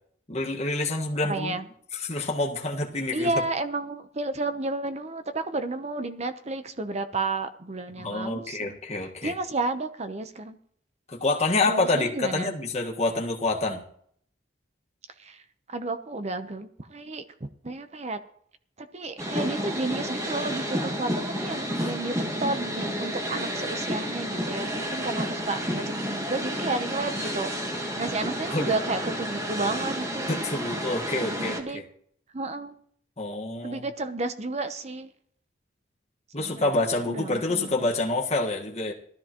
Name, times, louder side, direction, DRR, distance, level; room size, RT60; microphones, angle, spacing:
voice 1, 0.3-1.6 1.9-3.3 8.0-9.3 11.1-13.8 21.5-21.7 28.5-28.7 30.3-31.8 33.2-33.9 36.3-38.9, left 2 dB, 35° left, -1 dB, 1.6 m, -27 dB
voice 2, 1.2-1.7 3.1-8.7 9.2-10.6 11.6-12.5 15.2-15.4 15.7-18.2 18.8-30.4 31.2-31.8 32.3-32.7 33.6-35.1 36.4-36.7 37.1-37.8, right 2 dB, 35° right, 9 dB, 0.8 m, -32 dB
sound 1, 19.2-31.6, equal, 15° right, 1.5 m, -31 dB
16.5 x 13.0 x 3.0 m, 0.64 s
head